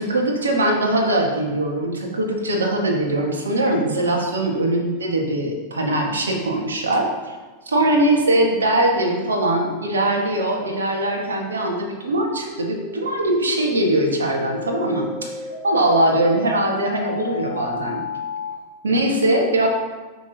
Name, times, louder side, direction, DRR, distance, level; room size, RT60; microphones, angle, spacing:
voice 1, 0.0-7.4 7.6-15.3 15.6-18.0 18.8-19.7, right 1 dB, 70° right, 1 dB, 1.7 m, -21 dB
sound 1, 12.5-18.5, left 3 dB, 85° right, 1.8 m, -32 dB
12.5 x 5.9 x 2.9 m, 1.3 s
figure-of-eight pair, 90°, 0 cm